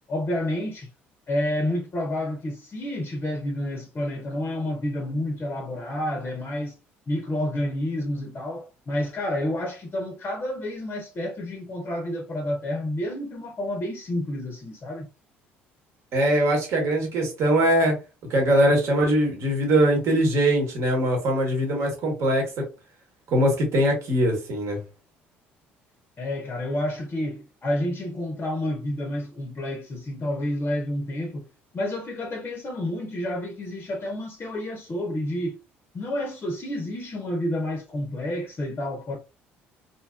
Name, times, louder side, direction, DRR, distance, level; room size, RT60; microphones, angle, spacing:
voice 1, 0.1-0.9 1.3-6.8 7.1-15.1 26.2-31.5 31.7-35.6 35.9-39.2, left 1 dB, 35° left, 0.6 m, -29 dB
voice 2, 16.1-18.0 18.3-22.5 23.3-24.8, right 1 dB, 60° right, 1.1 m, -21 dB
2.6 x 2.3 x 2.2 m
hypercardioid pair, 60°, 6 cm